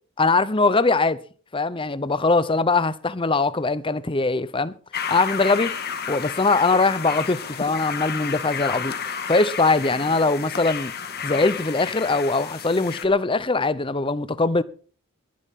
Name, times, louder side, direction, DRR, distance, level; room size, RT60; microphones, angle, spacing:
voice 1, 0.2-1.2 1.5-4.7 5.1-5.7 6.1-8.9 9.3-10.9 11.2-14.6, left 3 dB, 25° left, 0.7 m, -21 dB
sound 1, 4.9-13.1, left 7 dB, 45° left, 1.7 m, -31 dB
21.5 x 12.5 x 3.7 m
head